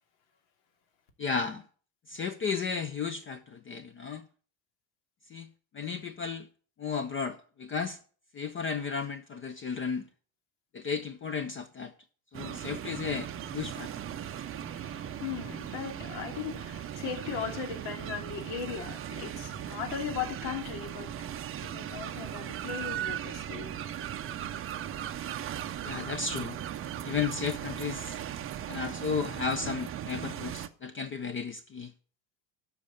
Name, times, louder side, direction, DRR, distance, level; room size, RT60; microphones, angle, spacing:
voice 1, 1.2-1.6 2.1-4.2 5.3-5.5 5.7-6.5 6.8-8.0 8.3-10.1 10.7-11.9 12.3-13.9 25.8-26.6 27.0-28.2 28.7-31.9, left 5 dB, 25° left, 0.5 m, -34 dB
sound 1, 12.3-30.7, right 10 dB, 30° right, 0.5 m, -38 dB
voice 2, 13.7-21.4 21.6-23.7, left 7 dB, 80° left, 3.1 m, -38 dB
12.5 x 5.4 x 7.0 m
cardioid pair, 155°, 48 cm